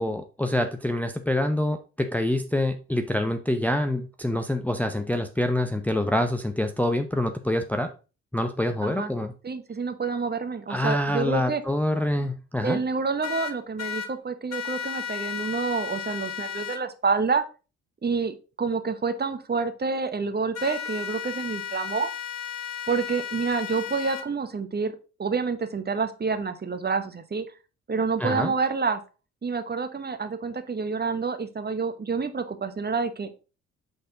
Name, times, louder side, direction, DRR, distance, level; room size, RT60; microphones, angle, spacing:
voice 1, 0.0-7.9 8.3-9.3 10.7-12.8 28.2-28.5, left 1 dB, 5° left, 6 dB, 0.7 m, -26 dB
voice 2, 9.4-11.6 12.6-17.4 18.0-22.1 22.9-24.9 25.2-27.4 27.9-29.0 29.4-33.3, right 4 dB, 25° right, 9 dB, 1.1 m, -28 dB
sound 1, 13.2-14.1 14.5-16.8 20.5-24.2, left 8 dB, 45° left, 1.1 m, -34 dB
7.9 x 4.2 x 3.9 m, 0.33 s
hypercardioid pair, 45°, 37 cm